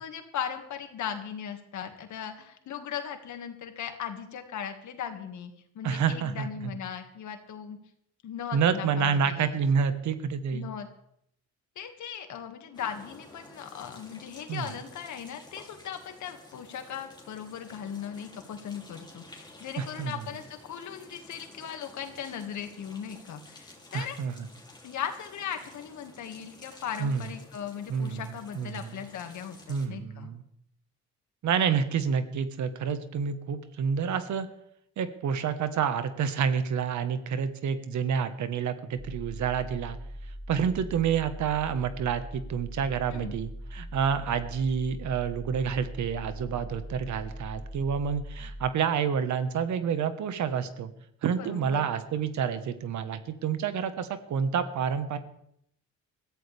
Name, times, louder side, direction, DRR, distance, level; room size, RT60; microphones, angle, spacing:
voice 1, 0.0-7.8 8.2-9.6 10.5-10.9 11.8-24.2 24.8-30.3 43.1-43.4 51.4-51.9, left 8 dB, 70° left, 6 dB, 2.1 m, -38 dB
voice 2, 5.8-6.5 8.5-10.7 14.5-14.7 19.8-20.3 23.9-24.3 27.0-27.3 27.9-28.2 28.5-29.0 29.7-30.4 31.4-34.5 35.0-40.0 40.5-50.9 51.2-55.2, right 7 dB, 70° right, 10 dB, 1.5 m, -28 dB
sound 1, 12.7-29.9, left 2 dB, 15° left, 3.1 m, -52 dB
sound 2, 39.0-48.7, equal, 10° right, 1.0 m, -41 dB
21.5 x 14.5 x 3.5 m, 0.72 s
cardioid pair, 90°, 30 cm